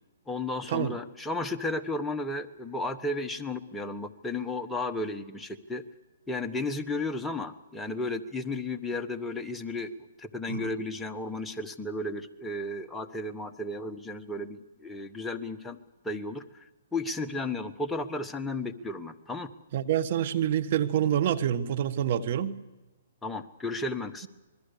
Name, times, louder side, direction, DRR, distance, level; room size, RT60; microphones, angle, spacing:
voice 1, 0.3-5.8 6.3-15.8 16.0-19.5 23.2-24.3, left 2 dB, 5° left, 1.2 m, -34 dB
voice 2, 19.7-22.6, right 10 dB, 50° right, 1.4 m, -27 dB
26.0 x 22.0 x 6.8 m
hypercardioid pair, 135°, 0 cm